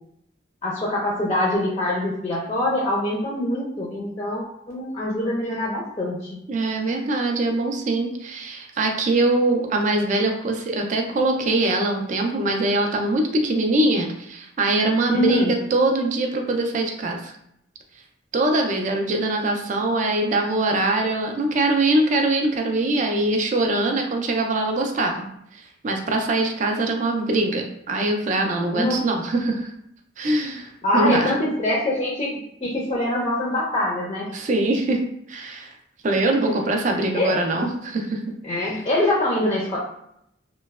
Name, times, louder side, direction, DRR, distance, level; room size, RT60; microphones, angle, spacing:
voice 1, 0.6-6.4 15.1-15.5 28.7-29.1 30.8-34.3 36.2-36.6 37.1-37.4 38.4-39.8, left 1 dB, 25° left, -4 dB, 0.4 m, -24 dB
voice 2, 6.5-17.3 18.3-25.3 25.5-29.7 30.2-31.3 34.3-35.0 35.3-35.7 36.0-38.2, right 2 dB, 40° right, 3 dB, 0.3 m, -23 dB
3.0 x 2.0 x 2.3 m, 0.75 s
head